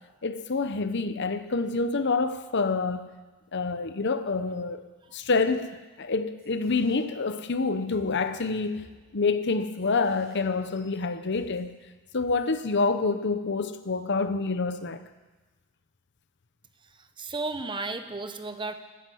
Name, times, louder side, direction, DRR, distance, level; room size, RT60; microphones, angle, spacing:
voice 1, 0.2-3.1 3.5-4.8 5.1-11.7 12.1-15.0, left 4 dB, 55° left, 0.8 m, -27 dB
sound 1, 6.4-7.6 7.9-11.6 12.2-12.5, equal, 5° right, 7.0 m, -57 dB
voice 2, 16.9-18.7, right 3 dB, 20° right, 0.8 m, -34 dB
14.0 x 10.0 x 9.2 m
head